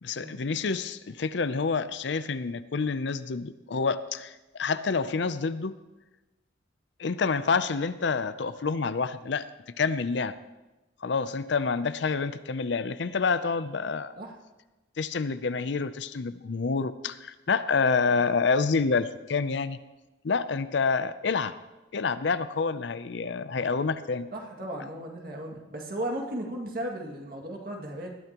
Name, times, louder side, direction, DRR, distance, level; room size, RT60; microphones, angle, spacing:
voice 1, 0.0-5.7 7.0-9.5 9.8-10.3 11.0-14.1 15.0-19.8 20.2-21.5 21.9-24.3, left 4 dB, 65° left, 13 dB, 0.5 m, -28 dB
voice 2, 24.3-28.1, right 1 dB, 50° right, 0 dB, 2.2 m, -35 dB
19.5 x 12.5 x 3.0 m, 1.1 s
head